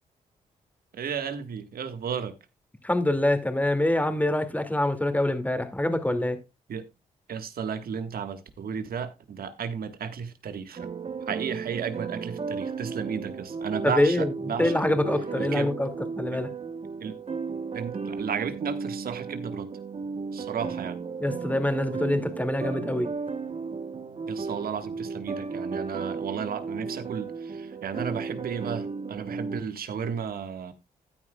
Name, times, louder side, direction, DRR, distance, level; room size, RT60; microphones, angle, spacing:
voice 1, 0.9-2.3 6.7-6.9 7.3-10.9 11.3-14.9 15.4-15.7 16.3-16.4 17.0-17.1 17.7-19.7 20.3-21.0 24.3-30.7, right 7 dB, 70° right, 1.5 m, -33 dB
voice 2, 2.8-6.4 13.8-14.3 14.6-15.9 16.2-16.5 21.2-23.1, left 1 dB, 10° left, 2.3 m, -25 dB
sound 1, 10.8-29.6, right 5 dB, 40° right, 1.1 m, -34 dB
14.0 x 9.6 x 2.3 m
supercardioid pair, 55°, 16 cm